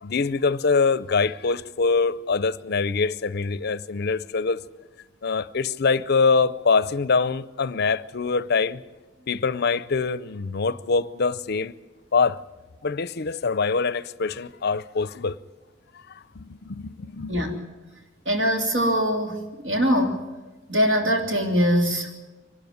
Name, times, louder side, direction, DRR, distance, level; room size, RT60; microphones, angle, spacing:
voice 1, 0.0-4.6 5.2-8.8 9.3-11.7 12.1-12.4 12.8-15.4 16.1-17.4, left 4 dB, 50° left, 0.6 m, -24 dB
voice 2, 18.2-20.2 20.7-22.1, equal, 60° right, 3.2 m, -22 dB
24.5 x 12.0 x 9.5 m
head